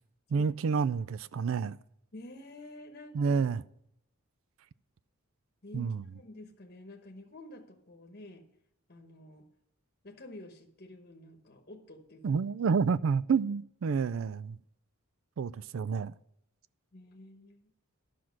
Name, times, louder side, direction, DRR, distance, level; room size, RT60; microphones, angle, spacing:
voice 1, 0.3-1.8 3.1-3.6 5.7-6.0 12.2-14.6 15.4-16.1, right 5 dB, 60° right, 0.3 m, -29 dB
voice 2, 2.1-3.5 5.6-8.4 8.9-9.5 10.0-12.4 16.9-17.6, left 1 dB, 45° left, 1.1 m, -49 dB
11.5 x 5.9 x 6.3 m
head